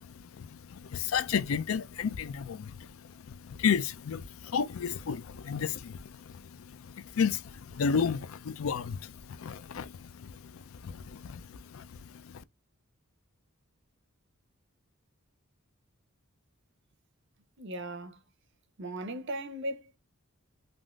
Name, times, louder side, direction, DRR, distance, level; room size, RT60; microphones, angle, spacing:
voice 1, 0.0-12.4, left 6 dB, 70° left, 0.4 m, -33 dB
voice 2, 17.6-18.2 18.8-20.0, right 1 dB, 55° right, 0.6 m, -37 dB
3.5 x 2.5 x 2.3 m
head